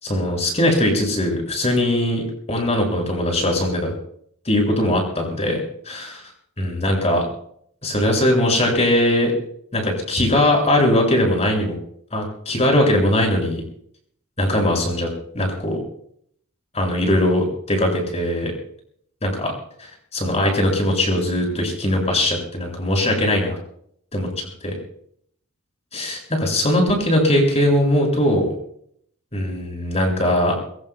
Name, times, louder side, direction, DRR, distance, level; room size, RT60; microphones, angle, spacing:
voice 1, 0.0-2.2 2.5-3.9 4.4-5.6 5.8-6.2 6.6-7.3 7.8-9.3 9.7-11.7 12.1-13.6 14.4-15.1 15.3-15.8 16.7-18.5 19.2-19.5 20.1-23.6 24.1-24.7 25.9-28.5 29.3-30.5, left 1 dB, 30° left, 1 dB, 6.5 m, -20 dB
23.0 x 22.5 x 2.3 m, 0.65 s
head